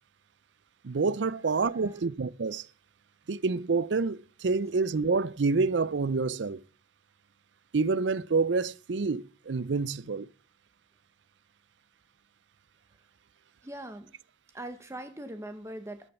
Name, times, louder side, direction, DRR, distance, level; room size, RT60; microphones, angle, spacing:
voice 1, 0.8-2.7 3.3-6.6 7.7-10.3, right 4 dB, 85° right, 0.6 m, -28 dB
voice 2, 1.7-2.0 13.6-14.1 14.5-16.1, right 1 dB, 15° right, 1.0 m, -41 dB
13.0 x 6.7 x 8.2 m
head